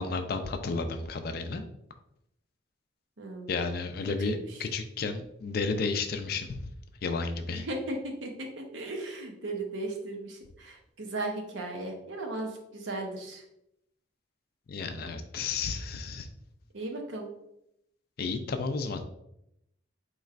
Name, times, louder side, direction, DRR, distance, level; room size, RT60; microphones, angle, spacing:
voice 1, 0.0-1.6 3.5-6.7 7.0-7.7 14.7-16.3 18.2-19.0, left 4 dB, 50° left, 7 dB, 0.3 m, -32 dB
voice 2, 3.2-3.6 4.2-4.5 7.5-8.3 8.6-13.4 16.7-17.3, right 2 dB, 80° right, 2 dB, 0.7 m, -36 dB
4.2 x 3.1 x 2.4 m, 0.80 s
head